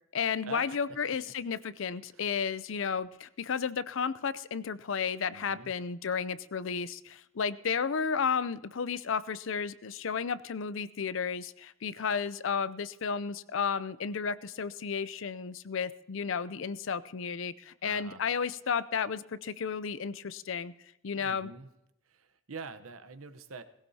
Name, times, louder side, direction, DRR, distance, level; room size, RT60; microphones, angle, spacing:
voice 1, 0.1-20.7 21.0-21.5, left 6 dB, 65° left, 16 dB, 0.5 m, -33 dB
voice 2, 5.3-5.7 17.8-18.2 21.2-21.7 22.1-23.6, right 4 dB, 90° right, 10 dB, 0.9 m, -45 dB
18.0 x 16.5 x 2.8 m, 0.84 s
head